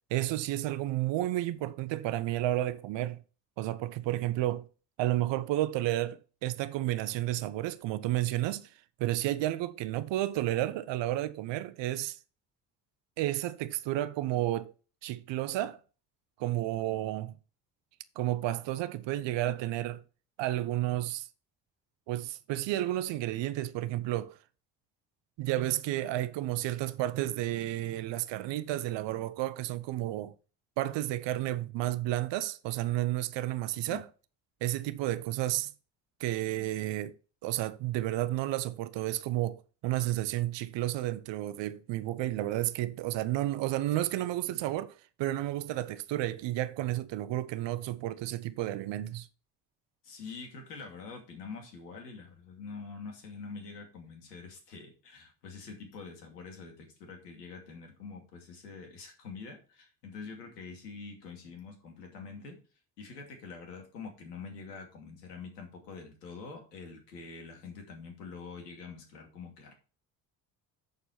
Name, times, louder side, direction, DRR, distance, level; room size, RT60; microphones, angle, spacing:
voice 1, 0.1-3.2 3.6-4.7 5.0-8.7 9.0-12.2 13.2-14.7 15.0-15.8 16.4-17.3 18.2-20.0 20.4-21.3 22.1-24.4 25.4-30.3 30.8-34.1 34.6-35.7 36.2-37.1 37.4-49.3, right 15 dB, 65° right, 1.0 m, -31 dB
voice 2, 50.0-62.6 63.0-69.7, left 4 dB, 90° left, 2.6 m, -45 dB
8.2 x 6.9 x 4.3 m
hypercardioid pair, 55°, 47 cm